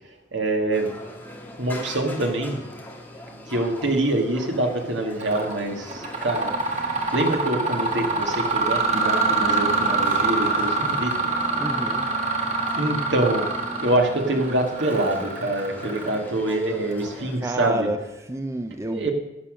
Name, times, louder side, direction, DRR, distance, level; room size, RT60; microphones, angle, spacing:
voice 1, 0.3-0.9 1.6-2.6 3.5-6.5 7.1-11.1 12.8-13.4 13.8-17.9 18.9-19.1, right 1 dB, 70° right, 3 dB, 1.9 m, -25 dB
sound 1, 0.7-17.4, left 1 dB, 10° left, 1.5 m, -41 dB
Mechanisms, 5.2-5.5 5.9-16.5, right 3 dB, 35° right, 1.6 m, -25 dB
voice 2, 11.5-12.1 17.3-19.1, right 1 dB, 15° right, 8 dB, 0.5 m, -30 dB
11.5 x 8.6 x 6.3 m, 1.0 s
head